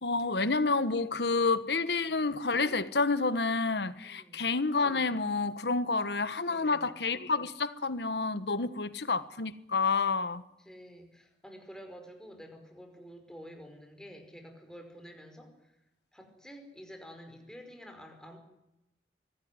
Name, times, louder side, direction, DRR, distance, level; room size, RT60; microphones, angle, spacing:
voice 1, 0.0-10.4, left 4 dB, 70° left, 1.4 m, -29 dB
voice 2, 4.0-4.4 6.5-6.9 10.6-15.8 16.1-18.4, equal, 5° left, 5.2 m, -49 dB
24.0 x 16.5 x 9.6 m
head